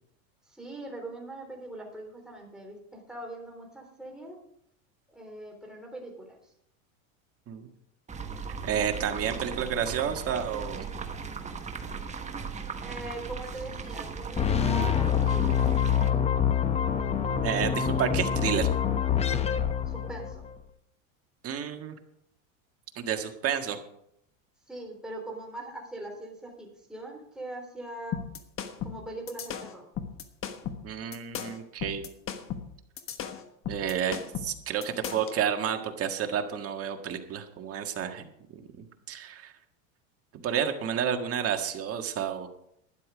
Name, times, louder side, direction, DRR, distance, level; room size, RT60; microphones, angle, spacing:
voice 1, 0.5-4.4 5.1-6.5 12.8-16.2 19.9-20.5 24.7-28.2 28.8-29.9, right 2 dB, ahead, 0 dB, 3.6 m, -41 dB
sound 1, 8.1-16.1, right 5 dB, 15° right, 1.2 m, -38 dB
voice 2, 8.6-10.9 17.4-18.7 21.4-21.9 22.9-23.8 30.8-32.0 33.6-38.2 38.5-38.7 39.1-39.5 40.4-42.5, right 8 dB, 35° right, 5 dB, 1.7 m, -30 dB
sound 2, 14.4-20.5, left 8 dB, 15° left, 0.7 m, -26 dB
sound 3, 28.1-35.4, left 8 dB, 30° left, 1.3 m, -36 dB
12.0 x 10.0 x 5.1 m, 0.74 s
supercardioid pair, 120°, 41 cm